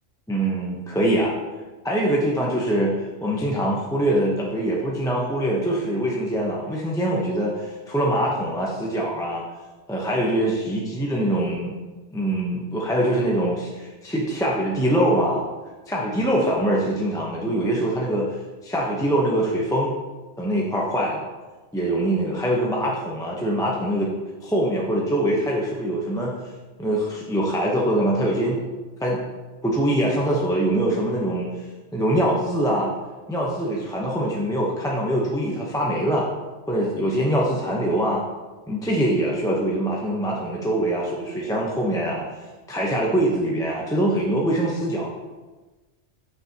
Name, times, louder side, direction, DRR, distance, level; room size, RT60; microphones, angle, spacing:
voice 1, 0.3-1.4 1.8-9.4 9.9-11.8 12.1-15.4 15.9-20.0 20.4-21.2 21.7-24.1 24.4-26.3 26.8-28.6 29.0-29.2 29.6-31.6 31.9-32.9 33.3-36.3 36.7-38.2 38.7-42.3 42.7-45.3, right 1 dB, 5° left, -3 dB, 0.7 m, -23 dB
7.5 x 6.4 x 2.9 m, 1.2 s
omnidirectional pair, 1.2 m